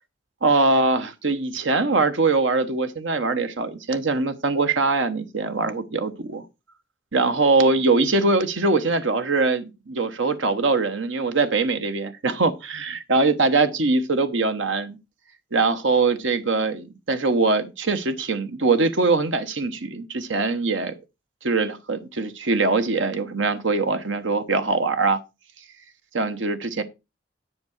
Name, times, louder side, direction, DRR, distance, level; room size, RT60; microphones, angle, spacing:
voice 1, 0.4-6.4 7.1-15.0 15.5-20.9 21.4-25.2 26.1-26.8, right 3 dB, 75° right, 1.1 m, -22 dB
10.5 x 4.7 x 6.5 m
head